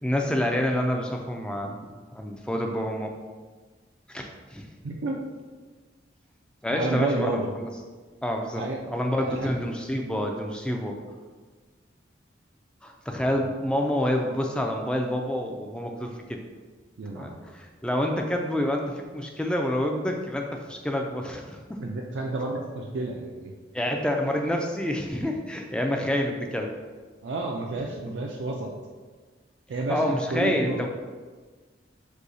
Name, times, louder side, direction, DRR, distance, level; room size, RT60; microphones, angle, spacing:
voice 1, 0.0-3.1 4.1-4.7 6.6-7.7 8.2-11.0 12.8-16.4 17.1-21.8 23.7-26.7 29.9-30.9, left 1 dB, 5° left, 2 dB, 0.3 m, -28 dB
voice 2, 4.8-5.2 6.7-7.5 8.6-8.8 9.2-9.5 17.0-17.4 21.8-23.5 27.2-28.7 29.7-30.8, right 2 dB, 80° right, 0 dB, 0.4 m, -30 dB
6.2 x 2.7 x 2.6 m, 1.4 s
head